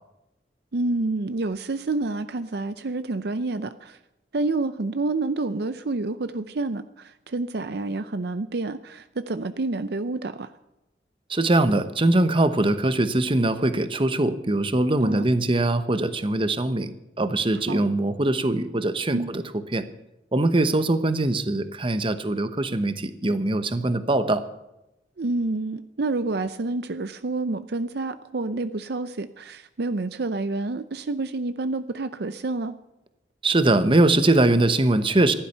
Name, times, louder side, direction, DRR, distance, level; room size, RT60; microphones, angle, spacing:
voice 1, 0.7-4.0 4.3-10.5 15.0-15.3 17.7-17.8 19.1-19.3 25.2-32.7, right 2 dB, 60° right, 12 dB, 0.6 m, -28 dB
voice 2, 11.3-19.4 19.7-19.8 20.3-24.4 33.4-35.3, right 2 dB, 30° right, 11 dB, 1.0 m, -22 dB
15.0 x 12.0 x 6.8 m, 0.92 s
head